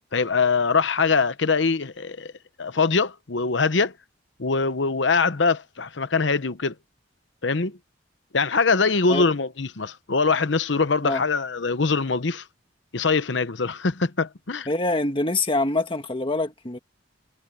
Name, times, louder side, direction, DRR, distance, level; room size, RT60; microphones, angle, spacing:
voice 1, 0.1-2.3 2.6-3.9 4.4-6.7 7.4-7.8 8.3-12.4 12.9-14.7, left 4 dB, 70° left, 0.9 m, -23 dB
voice 2, 14.7-16.8, left 2 dB, 25° left, 1.7 m, -25 dB
head